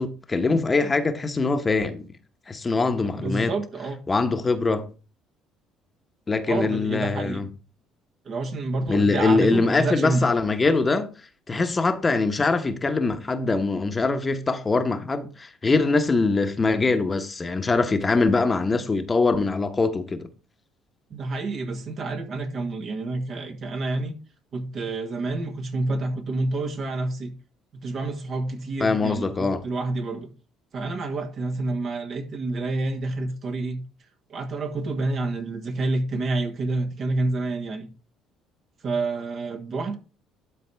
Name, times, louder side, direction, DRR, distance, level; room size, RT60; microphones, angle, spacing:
voice 1, 0.0-2.1 2.5-3.5 4.1-4.9 6.3-7.5 8.9-11.1 11.5-20.3 28.8-29.6, left 3 dB, 30° left, 1.1 m, -23 dB
voice 2, 3.1-4.0 6.5-7.5 8.2-10.3 21.1-24.1 24.5-27.3 27.7-30.3 30.7-33.8 34.3-37.9 38.8-40.0, right 2 dB, 50° right, 1.5 m, -28 dB
11.5 x 4.1 x 3.4 m
hypercardioid pair, 60°, 0 cm